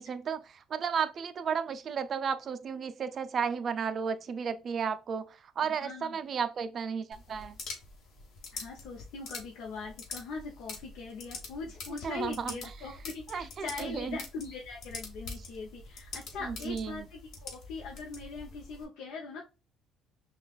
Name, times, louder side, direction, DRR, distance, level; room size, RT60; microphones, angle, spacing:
voice 1, 0.0-7.6 12.0-12.6 13.3-14.2 16.4-17.1, right 6 dB, 45° right, 0.4 m, -33 dB
voice 2, 5.7-6.2 8.5-19.4, left 4 dB, 75° left, 0.7 m, -41 dB
sound 1, 7.1-18.8, left 4 dB, 55° left, 1.1 m, -45 dB
6.0 x 2.3 x 2.3 m
cardioid pair, 110°, 0 cm